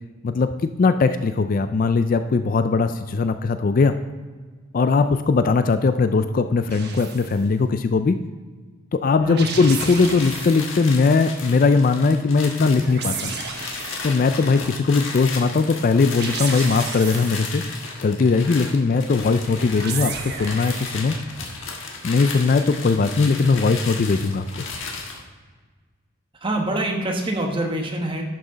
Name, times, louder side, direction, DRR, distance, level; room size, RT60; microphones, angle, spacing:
voice 1, 0.8-3.9 4.7-8.2 8.9-13.3 14.0-17.6 18.0-21.1 22.0-24.6, left 4 dB, 40° left, 10 dB, 0.3 m, -19 dB
sound 1, 6.7-7.4 9.2-10.8 12.6-14.3 16.0-17.7 19.5-21.1, right 5 dB, 50° right, 1.1 m, -33 dB
sound 2, 9.5-25.2, left 4 dB, 60° left, 1.4 m, -34 dB
voice 2, 26.4-28.2, right 1 dB, 25° right, 1 dB, 1.1 m, -25 dB
11.5 x 6.1 x 3.9 m, 1.4 s
head